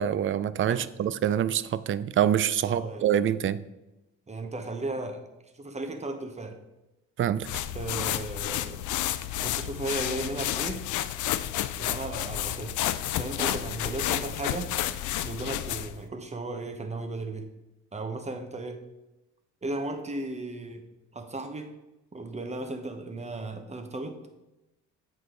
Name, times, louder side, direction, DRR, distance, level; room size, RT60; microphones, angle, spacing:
voice 1, 0.0-3.6 7.2-7.5, right 10 dB, 45° right, 16 dB, 0.4 m, -26 dB
voice 2, 2.6-3.2 4.3-6.6 7.7-8.8 9.4-10.8 11.8-12.8 13.1-14.7 15.2-17.5 17.9-18.8 19.6-20.8 21.1-21.7 22.1-24.2, right 2 dB, 20° right, 6 dB, 1.0 m, -35 dB
sound 1, 7.4-16.0, left 13 dB, 80° left, 0.5 m, -31 dB
7.8 x 4.9 x 3.8 m, 0.99 s
cardioid pair, 90°, 30 cm